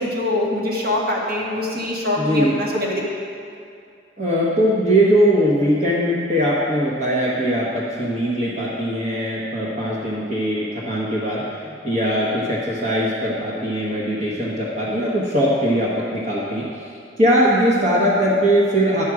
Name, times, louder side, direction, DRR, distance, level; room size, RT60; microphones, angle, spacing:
voice 1, 0.0-3.0, left 1 dB, 60° right, -4 dB, 1.5 m, -23 dB
voice 2, 2.2-2.5 4.2-11.4 11.8-16.6 17.2-19.0, equal, 40° right, -6 dB, 1.1 m, -20 dB
10.0 x 6.2 x 4.7 m, 2.4 s
head